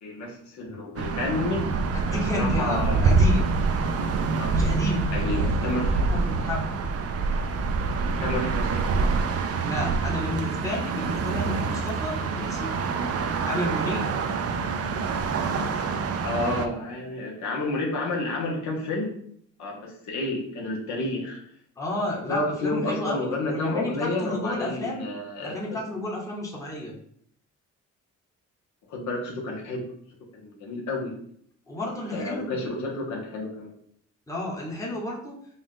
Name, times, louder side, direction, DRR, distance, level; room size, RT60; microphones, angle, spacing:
voice 1, 0.0-1.7 2.0-3.2 4.4-4.6 5.1-6.1 8.2-8.9 16.2-19.2 19.6-21.4 22.1-25.8 28.9-29.8 30.4-31.2 32.1-33.7, left 2 dB, 70° left, -1 dB, 1.2 m, -30 dB
sound 1, 1.0-16.7, right 4 dB, 55° right, 0.5 m, -26 dB
voice 2, 1.9-3.5 4.5-5.5 6.1-6.8 9.6-12.7 13.4-14.1 21.8-25.1 25.4-26.9 31.7-32.5 34.3-35.3, left 1 dB, 10° left, -3 dB, 1.0 m, -31 dB
4.0 x 2.4 x 3.7 m, 0.65 s
cardioid pair, 90°, 30 cm